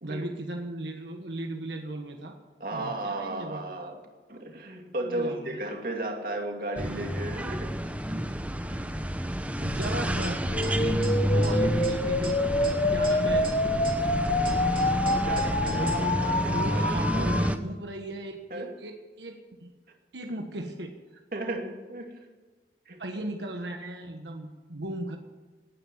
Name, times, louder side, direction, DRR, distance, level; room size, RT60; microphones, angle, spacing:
voice 1, 0.0-2.4 2.7-3.6 5.0-5.7 9.6-13.5 15.4-19.7 20.1-21.2 23.0-25.2, right 1 dB, 85° right, 3 dB, 1.5 m, -37 dB
voice 2, 2.6-4.0 4.3-7.8 8.6-8.8 12.3-12.6 15.2-17.4 18.5-18.7 21.3-22.2 22.9-23.3, right 1 dB, 50° right, 2 dB, 2.5 m, -35 dB
sound 1, 6.8-17.6, equal, 10° right, 0.8 m, -29 dB
sound 2, 9.6-16.0, equal, 30° right, 2.4 m, -37 dB
sound 3, 10.5-17.5, left 2 dB, 35° left, 1.0 m, -27 dB
18.0 x 9.4 x 8.0 m, 1.4 s
head